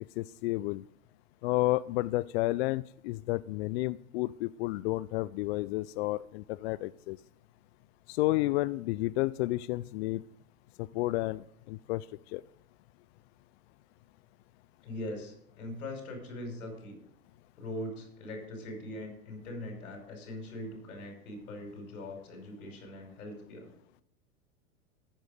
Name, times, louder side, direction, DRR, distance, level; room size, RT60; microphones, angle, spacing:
voice 1, 0.2-0.8 1.4-7.2 8.1-10.2 10.8-12.4, left 18 dB, 50° left, 17 dB, 0.4 m, -31 dB
voice 2, 14.8-17.0 17.6-23.7, left 1 dB, 75° left, 4 dB, 5.5 m, -41 dB
14.5 x 8.9 x 5.0 m, 0.71 s
hypercardioid pair, 105°, 42 cm